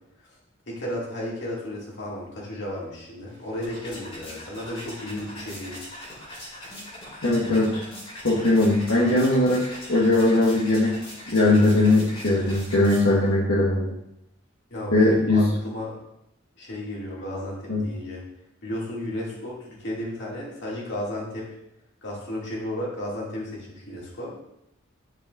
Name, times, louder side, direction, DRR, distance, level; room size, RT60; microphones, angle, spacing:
voice 1, 0.7-5.8 14.7-16.0 16.6-18.2 18.6-21.5 22.0-24.3, left 1 dB, 55° left, -4 dB, 2.3 m, -33 dB
sound 1, 3.3-13.3, left 1 dB, 25° left, 2.2 m, -41 dB
voice 2, 7.2-7.8 8.2-9.6 9.9-10.9 11.3-13.9 14.9-15.5 17.7-17.8, left 2 dB, 75° left, -5 dB, 1.3 m, -20 dB
11.0 x 5.2 x 2.5 m, 0.83 s
head